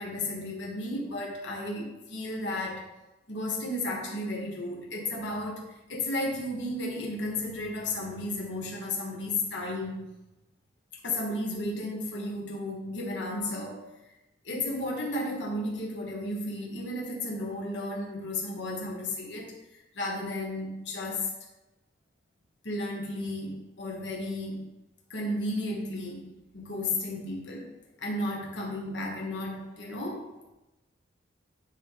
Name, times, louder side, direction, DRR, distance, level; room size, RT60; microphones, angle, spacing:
voice 1, 0.0-2.9 3.3-10.0 11.0-13.9 14.4-21.3 22.6-24.6 25.1-27.7 28.0-30.3, left 1 dB, 75° left, -2 dB, 1.5 m, -33 dB
9.1 x 3.5 x 4.1 m, 0.99 s
head